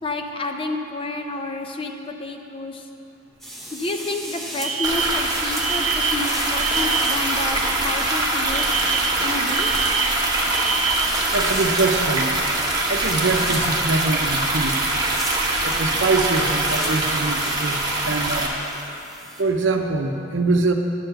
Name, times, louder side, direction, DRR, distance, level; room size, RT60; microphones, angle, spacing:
voice 1, 0.0-2.9 3.7-8.8 9.2-9.9, left 2 dB, 30° left, 4 dB, 0.6 m, -30 dB
sound 1, 3.4-19.4, right 1 dB, ahead, 0.9 m, -38 dB
Alarm, 4.6-7.3 8.5-11.2, right 6 dB, 35° right, 0.7 m, -26 dB
sound 2, 4.8-18.5, right 2 dB, 20° right, 1.1 m, -23 dB
voice 2, 11.3-12.3 12.9-14.7 15.6-18.5 19.4-20.7, right 3 dB, 70° right, 4 dB, 0.7 m, -23 dB
9.9 x 4.7 x 7.7 m, 2.8 s
head